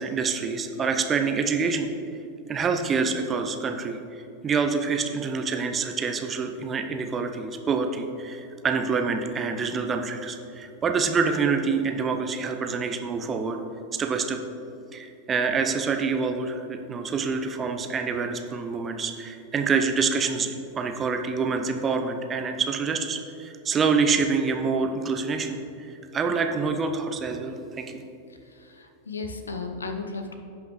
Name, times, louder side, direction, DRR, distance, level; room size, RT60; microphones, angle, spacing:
voice 1, 0.0-1.9 2.5-13.6 13.9-14.4 14.9-25.6 26.1-28.0, right 5 dB, 20° right, 5 dB, 0.7 m, -26 dB
voice 2, 28.4-30.4, left 4 dB, 75° left, 6 dB, 0.8 m, -35 dB
16.5 x 5.6 x 3.1 m, 2.7 s
figure-of-eight pair, 90°, 0 cm